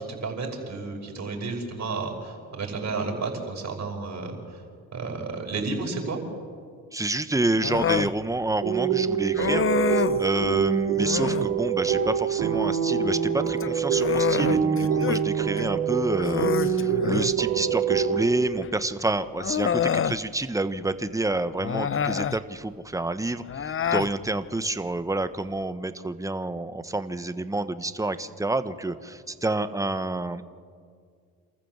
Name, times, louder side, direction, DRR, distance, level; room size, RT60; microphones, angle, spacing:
voice 1, 0.0-4.3 4.9-6.2, right 3 dB, 50° right, 1 dB, 5.4 m, -32 dB
voice 2, 6.9-30.5, right 2 dB, 10° right, 11 dB, 1.3 m, -28 dB
Human voice, 7.6-8.1 9.3-10.2 11.0-11.5 13.4-15.2 15.6-15.7 16.2-17.4 18.6-18.7 19.4-20.2 21.6-22.4 23.5-24.1, left 8 dB, 35° left, 0.8 m, -27 dB
sound 1, 8.6-18.2, right 7 dB, 75° right, 3.4 m, -25 dB
27.5 x 14.5 x 7.5 m, 2.1 s
supercardioid pair, 55°, 35 cm